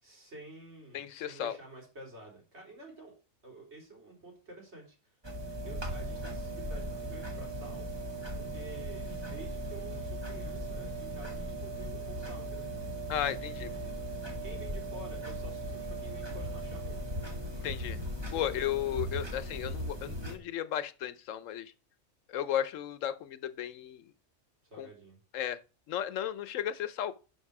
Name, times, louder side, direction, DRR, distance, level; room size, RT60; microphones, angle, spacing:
voice 1, 0.0-3.1 3.4-5.2 5.6-7.9 8.4-12.7 13.4-13.8 14.4-17.0 18.3-18.6 24.7-25.2, right 2 dB, 60° right, 3.8 m, -50 dB
voice 2, 0.9-1.6 13.1-13.7 17.6-18.0 18.3-21.7 22.3-24.1 24.8-24.9 25.3-25.6 25.9-27.1, left 10 dB, 85° left, 1.1 m, -34 dB
sound 1, 5.2-20.4, right 1 dB, 20° right, 1.8 m, -38 dB
11.0 x 5.3 x 4.7 m
omnidirectional pair, 1.3 m